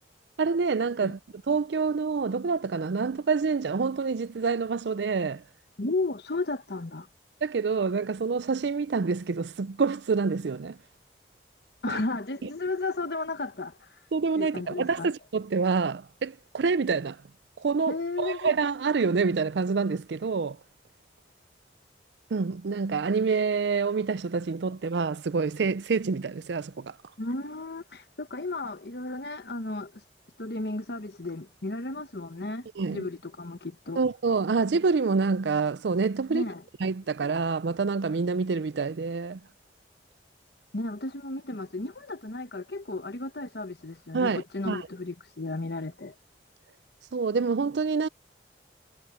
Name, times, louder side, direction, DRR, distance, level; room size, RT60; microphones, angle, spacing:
voice 1, 0.4-5.4 7.4-10.8 11.9-12.0 14.1-17.2 17.6-20.6 22.3-27.0 32.8-33.1 34.0-36.4 36.8-39.4 44.1-44.9 47.1-48.1, right 4 dB, 80° right, 0.5 m, -27 dB
voice 2, 5.8-7.1 11.8-13.9 14.3-15.1 17.9-18.5 27.2-30.0 30.4-34.0 36.3-36.6 40.7-46.1, left 2 dB, 65° left, 1.2 m, -34 dB
head